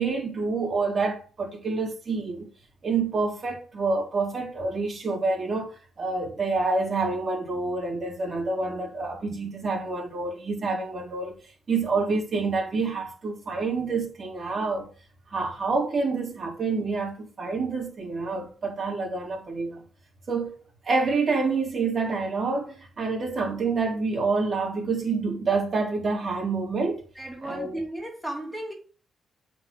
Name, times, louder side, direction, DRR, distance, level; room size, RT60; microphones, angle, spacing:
voice 1, 0.0-2.5 2.8-11.4 11.7-14.9 15.3-19.8 20.3-20.6 20.8-27.0 27.4-27.8, right 4 dB, 45° right, 4.0 m, -27 dB
voice 2, 27.1-28.7, right 1 dB, 5° right, 3.3 m, -34 dB
8.1 x 6.2 x 5.4 m
cardioid pair, 110°, 0 cm